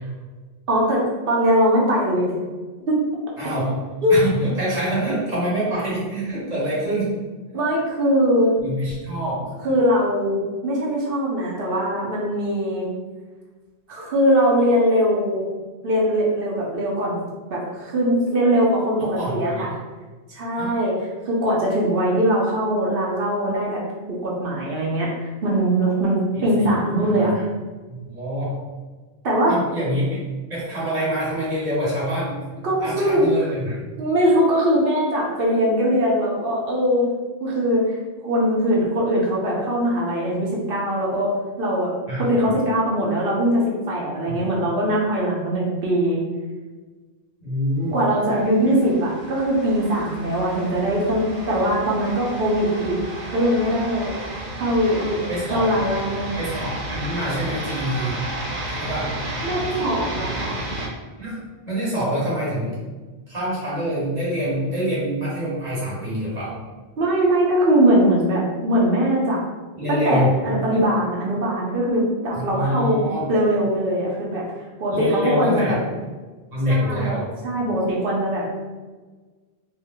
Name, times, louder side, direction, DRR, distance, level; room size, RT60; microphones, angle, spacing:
voice 1, 0.7-2.3 2.9-3.0 4.0-4.1 7.5-8.6 9.6-12.9 13.9-15.5 15.8-17.2 17.5-19.7 20.3-23.8 24.1-27.3 29.2-29.6 32.6-33.5 34.0-37.1 37.4-38.0 38.2-41.9 42.2-46.2 47.9-53.0 53.3-54.1 54.6-55.2 55.5-56.4 59.4-60.6 67.0-69.4 69.9-75.8 76.7-77.2 77.4-78.5, equal, 65° right, -4 dB, 0.9 m, -21 dB
voice 2, 3.4-3.7 4.1-7.2 8.6-9.5 19.0-19.6 20.6-20.8 26.3-26.7 27.0-27.4 27.9-28.6 29.5-30.2 30.5-33.8 42.1-42.3 44.3-44.4 47.4-47.9 48.6-48.7 55.3-55.7 56.4-58.1 58.7-59.1 61.2-62.8 63.3-66.5 69.8-70.3 72.3-73.2 74.9-75.8 76.5-77.3, equal, 40° right, -8 dB, 1.3 m, -26 dB
sound 1, 48.3-60.9, right 1 dB, 90° right, 1.1 m, -32 dB
2.7 x 2.2 x 3.5 m, 1.3 s
omnidirectional pair, 1.1 m